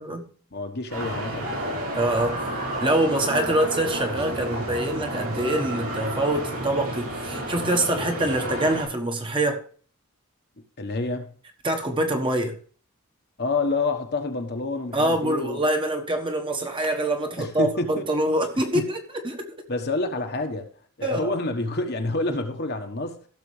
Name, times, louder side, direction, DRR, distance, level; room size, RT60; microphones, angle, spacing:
voice 1, 0.0-0.3 1.9-2.4 2.8-9.6 11.6-12.6 14.9-19.0 19.2-19.5 21.0-21.3, right 1 dB, 20° right, 1.3 m, -25 dB
voice 2, 0.5-1.7 10.8-11.3 13.4-15.6 17.4-18.0 18.7-18.9 19.7-20.7 21.0-23.2, left 2 dB, 45° left, 1.3 m, -28 dB
sound 1, 0.9-8.8, right 1 dB, 80° right, 5.9 m, -31 dB
15.5 x 6.7 x 3.3 m
head